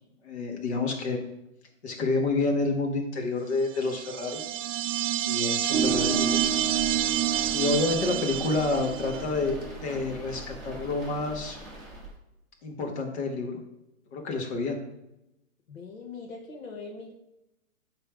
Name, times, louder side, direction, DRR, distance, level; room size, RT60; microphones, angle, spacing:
voice 1, 0.2-1.2 1.8-4.4 5.3-6.4 7.5-11.6 12.6-13.6 14.1-14.8, left 3 dB, 50° left, 1 dB, 1.8 m, -29 dB
sound 1, 3.8-9.2, right 12 dB, 65° right, 0.5 m, -28 dB
sound 2, 5.7-12.1, right 3 dB, ahead, 0.9 m, -34 dB
voice 2, 15.7-17.1, left 4 dB, 75° left, 1 dB, 1.4 m, -41 dB
8.5 x 3.4 x 5.0 m, 0.88 s
hypercardioid pair, 160°, 41 cm